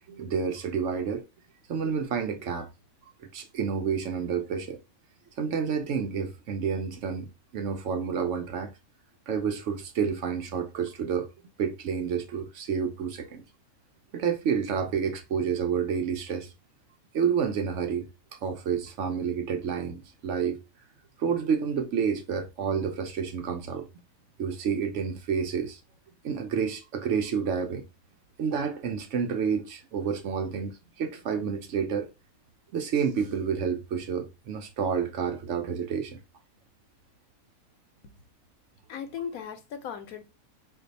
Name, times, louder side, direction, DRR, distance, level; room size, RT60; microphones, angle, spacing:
voice 1, 0.1-1.2 1.7-2.7 3.2-4.8 5.4-7.3 7.5-8.7 9.3-11.3 11.6-13.4 14.1-16.5 17.1-18.1 18.4-20.6 21.2-23.9 24.4-25.8 26.2-27.8 28.4-32.1 32.7-36.2, right 6 dB, 65° right, 0.9 m, -29 dB
voice 2, 38.9-40.2, left 7 dB, 90° left, 1.2 m, -37 dB
4.4 x 2.4 x 2.6 m
omnidirectional pair, 1.5 m